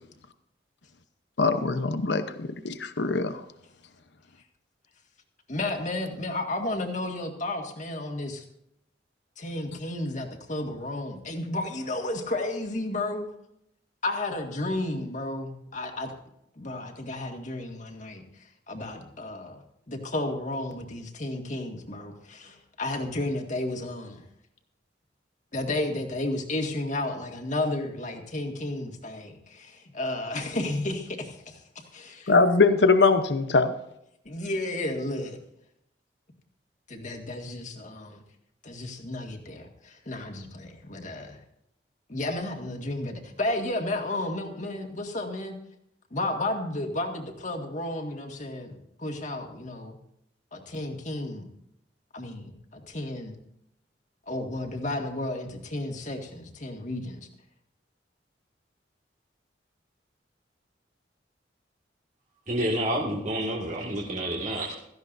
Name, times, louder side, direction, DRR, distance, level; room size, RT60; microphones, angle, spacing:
voice 1, 1.4-3.4 32.3-33.7, left 3 dB, 70° left, 9 dB, 0.9 m, -22 dB
voice 2, 5.5-8.4 9.4-13.3 14.0-16.1 16.6-18.2 18.7-19.6 19.9-24.2 25.5-32.3 34.3-35.4 36.9-38.2 38.6-41.4 42.1-45.6 46.1-50.0 50.5-51.5 52.1-53.3 54.3-57.3, left 2 dB, 45° left, 3 dB, 1.9 m, -32 dB
voice 3, 62.5-64.7, right 1 dB, 45° right, -2 dB, 1.9 m, -29 dB
17.0 x 14.5 x 2.6 m, 0.76 s
head